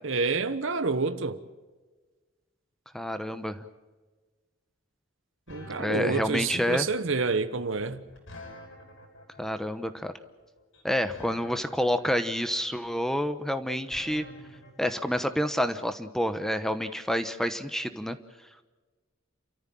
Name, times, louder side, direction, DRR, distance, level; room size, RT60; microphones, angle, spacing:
voice 1, 0.0-1.4 5.5-8.0, right 4 dB, 70° right, 1.2 m, -28 dB
voice 2, 2.9-3.6 5.8-6.9 9.4-10.1 10.8-14.2 14.8-18.2, equal, ahead, 1.0 m, -28 dB
sound 1, 5.5-15.1, left 1 dB, 70° left, 6.1 m, -48 dB
29.5 x 14.0 x 7.6 m
head